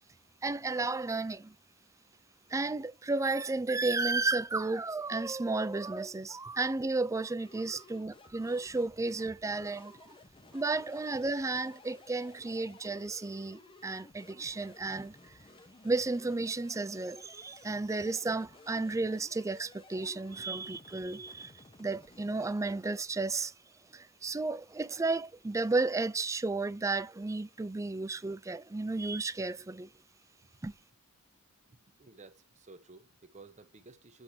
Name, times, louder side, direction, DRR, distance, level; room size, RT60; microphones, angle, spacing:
voice 1, 0.4-1.5 2.5-10.1 10.5-15.4 15.8-23.5 23.9-29.9 30.6-30.7, right 3 dB, 15° right, 0.4 m, -33 dB
sound 1, 7.4-22.6, left 2 dB, 25° left, 0.8 m, -56 dB
voice 2, 31.7-34.2, right 3 dB, 35° right, 0.8 m, -54 dB
8.0 x 4.9 x 2.8 m
head